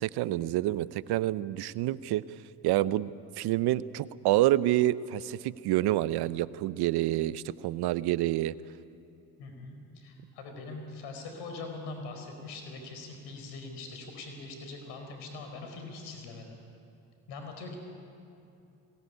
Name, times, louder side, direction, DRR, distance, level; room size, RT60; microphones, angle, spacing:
voice 1, 0.0-2.2 2.6-3.1 3.4-8.5, right 15 dB, 70° right, 17 dB, 0.8 m, -27 dB
voice 2, 9.4-16.5 17.3-17.8, left 3 dB, 80° left, 4 dB, 4.7 m, -42 dB
22.0 x 19.0 x 9.7 m, 2.7 s
supercardioid pair, 60°, 40 cm